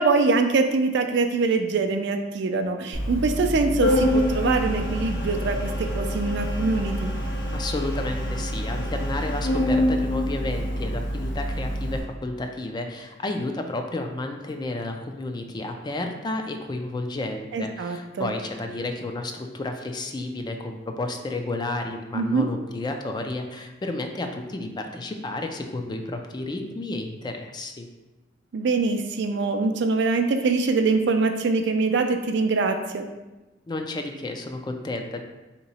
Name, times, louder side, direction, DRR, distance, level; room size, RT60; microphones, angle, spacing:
voice 1, 0.0-7.1 17.5-18.3 22.1-22.5 28.5-33.1, right 3 dB, 65° right, 6 dB, 0.4 m, -23 dB
Organ, 2.9-12.0, equal, 85° left, 1.1 m, -26 dB
voice 2, 7.5-27.9 33.7-35.2, left 2 dB, 25° left, 4 dB, 0.3 m, -31 dB
3.6 x 2.9 x 4.1 m, 1.1 s
head